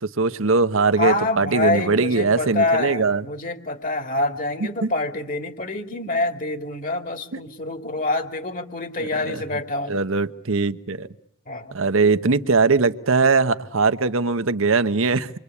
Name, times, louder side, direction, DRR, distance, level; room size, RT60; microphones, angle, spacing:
voice 1, 0.0-3.2 4.8-4.9 7.3-7.4 9.0-9.4 9.9-11.1 11.7-15.3, right 4 dB, 75° right, 10 dB, 1.0 m, -21 dB
voice 2, 1.0-10.0 11.5-11.8, left 2 dB, 40° left, 8 dB, 2.5 m, -26 dB
27.0 x 24.0 x 8.4 m, 0.75 s
head